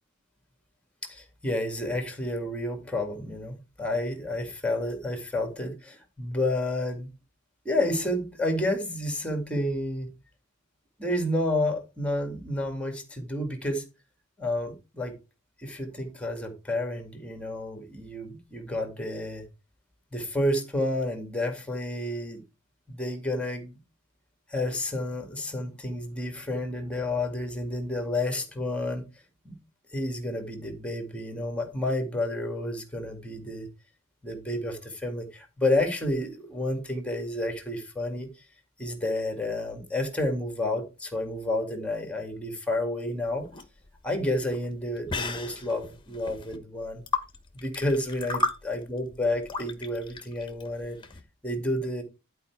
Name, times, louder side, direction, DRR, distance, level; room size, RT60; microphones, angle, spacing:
voice 1, 1.0-7.1 7.7-10.1 11.0-13.8 14.4-15.2 15.6-19.5 20.1-22.4 22.9-23.7 24.5-29.1 29.4-29.6 29.9-33.7 34.2-38.3 38.8-43.5 44.0-47.0 47.5-51.0 51.4-52.0, left 1 dB, 5° left, 1.9 m, -30 dB
sound 1, 43.2-51.2, left 3 dB, 25° left, 1.1 m, -35 dB
11.5 x 4.7 x 4.6 m
head